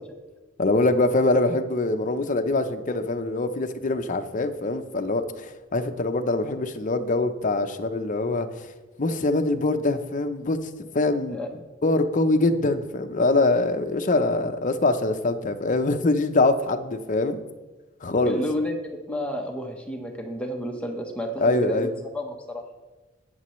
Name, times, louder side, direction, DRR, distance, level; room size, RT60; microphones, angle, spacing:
voice 1, 0.6-8.7 9.0-10.6 10.9-11.4 11.8-17.4 18.0-18.4 21.4-21.9, left 2 dB, 40° left, 7 dB, 0.7 m, -23 dB
voice 2, 18.3-21.9 22.1-22.6, equal, 5° left, 1 dB, 1.0 m, -31 dB
20.0 x 6.8 x 3.1 m, 1.2 s
head